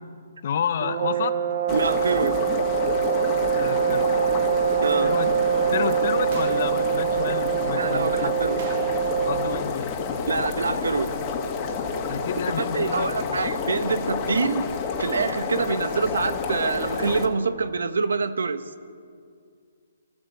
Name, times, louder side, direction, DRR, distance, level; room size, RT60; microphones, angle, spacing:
voice 1, 0.4-1.4 3.6-4.2 5.0-5.3 5.7-8.3 9.2-10.5 12.0-13.5, left 8 dB, 40° left, 10 dB, 1.2 m, -30 dB
sound 1, 0.8-9.8, right 8 dB, 50° right, 1.2 m, -24 dB
sound 2, 1.7-17.3, left 5 dB, 15° left, 1.9 m, -29 dB
voice 2, 1.7-2.4 4.8-5.1 7.8-8.6 10.3-11.1 12.6-14.7 15.0-18.6, right 4 dB, 90° right, 11 dB, 1.5 m, -25 dB
sound 3, 6.3-6.8 8.6-9.4 9.7-9.8 14.8-14.9, right 7 dB, 30° right, 1.0 m, -42 dB
27.0 x 14.0 x 8.3 m, 2.3 s
hypercardioid pair, 175°, 0 cm